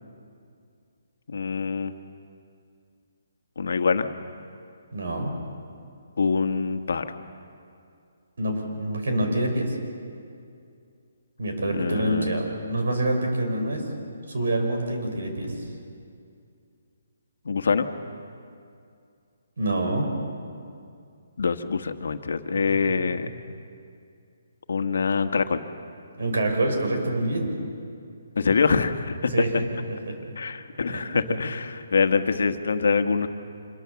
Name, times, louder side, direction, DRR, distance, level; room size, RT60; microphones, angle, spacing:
voice 1, 1.3-1.9 3.6-4.1 6.2-7.1 11.7-12.3 17.4-17.9 21.4-23.3 24.7-25.6 28.3-29.5 30.4-33.3, left 5 dB, 70° left, 7 dB, 1.5 m, -24 dB
voice 2, 4.9-5.3 8.4-9.8 11.4-13.8 14.3-15.5 19.6-20.1 26.1-27.5 29.3-29.5 29.9-30.2 30.9-31.0 31.3-31.4, right 1 dB, 75° right, 3 dB, 6.2 m, -26 dB
26.0 x 23.0 x 7.1 m, 2.4 s
hypercardioid pair, 170°, 0 cm